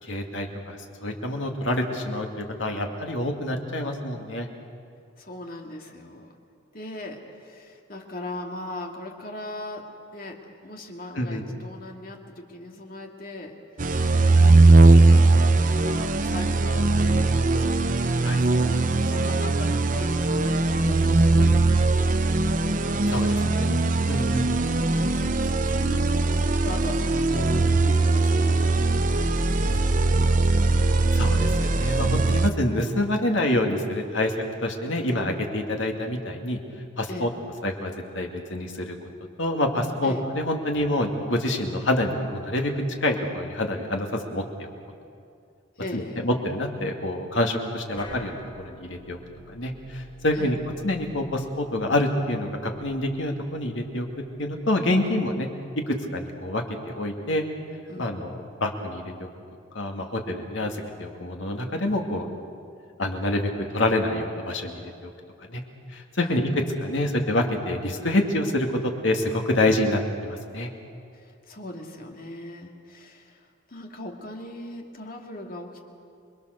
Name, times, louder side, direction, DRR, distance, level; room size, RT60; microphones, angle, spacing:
voice 1, 0.0-4.5 11.2-11.4 18.2-18.4 23.1-23.8 24.1-24.4 31.1-34.4 34.6-36.6 37.0-37.3 37.6-38.9 39.4-42.7 43.0-44.7 45.9-49.2 49.5-50.6 50.8-54.1 54.4-55.5 55.9-57.4 58.0-59.0 59.7-62.3 63.0-63.4 63.7-65.1 65.5-65.6 65.9-66.5 66.8-70.7, left 1 dB, 70° left, 2 dB, 2.3 m, -27 dB
voice 2, 5.2-6.3 6.7-9.9 10.1-13.9 14.2-15.3 15.7-17.8 18.3-21.9 23.3-23.6 25.1-30.3 37.1-37.3 40.0-40.2 45.8-46.2 50.3-50.5 57.9-58.2 66.2-66.4 71.1-75.8, left 1 dB, 45° left, 2 dB, 2.2 m, -39 dB
sound 1, 13.8-32.5, right 2 dB, 40° right, 0.7 m, -20 dB
sound 2, 48.0-54.7, equal, 25° left, 7.4 m, -47 dB
27.0 x 21.5 x 6.7 m, 2.4 s
head